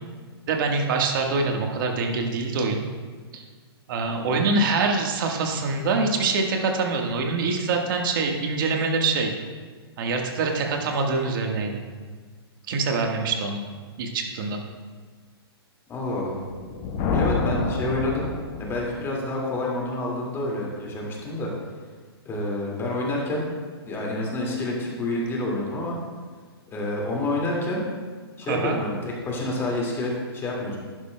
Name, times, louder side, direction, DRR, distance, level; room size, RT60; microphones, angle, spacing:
voice 1, 0.5-2.8 3.3-3.4 3.9-9.3 10.0-11.8 12.7-13.6 14.0-14.6 28.5-28.7, right 3 dB, 50° right, 2 dB, 1.4 m, -24 dB
voice 2, 15.9-16.4 17.1-18.3 18.6-21.5 22.3-23.5 23.9-26.0 26.7-27.9 28.4-30.8, left 2 dB, 15° left, -3 dB, 2.1 m, -28 dB
Thunder, 16.5-19.0, left 4 dB, 35° left, 1.1 m, -28 dB
11.5 x 10.0 x 2.2 m, 1.5 s
hypercardioid pair, 130°, 14 cm